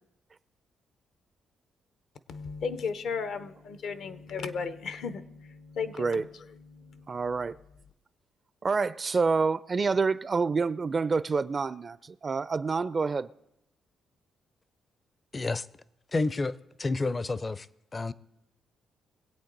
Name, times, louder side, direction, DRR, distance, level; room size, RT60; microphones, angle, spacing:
voice 1, 2.3-6.3 6.7-7.2, left 5 dB, 70° left, 0.8 m, -35 dB
voice 2, 7.1-7.6 8.6-13.3, right 4 dB, 40° right, 0.4 m, -27 dB
voice 3, 15.3-15.7 16.1-17.7 17.9-18.1, left 3 dB, 30° left, 0.5 m, -30 dB
22.0 x 8.3 x 4.0 m
supercardioid pair, 65°, 0 cm